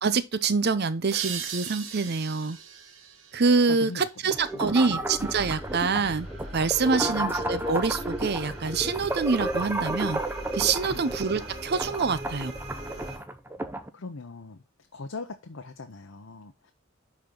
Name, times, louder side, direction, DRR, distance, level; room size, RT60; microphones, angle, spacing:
voice 1, 0.0-2.6 3.3-6.3 6.5-10.2 10.5-12.5, right 4 dB, 55° right, 0.7 m, -26 dB
sound 1, 1.1-4.5, right 7 dB, 85° right, 1.5 m, -39 dB
voice 2, 3.7-4.1 4.9-5.0 6.0-6.1 7.0-7.3 10.8-11.1 13.9-14.6 14.9-16.7, left 3 dB, 80° left, 0.8 m, -40 dB
sound 2, 4.3-13.9, right 1 dB, 10° right, 0.8 m, -32 dB
sound 3, 5.2-13.2, right 1 dB, 35° right, 5.5 m, -40 dB
11.5 x 4.4 x 3.8 m
head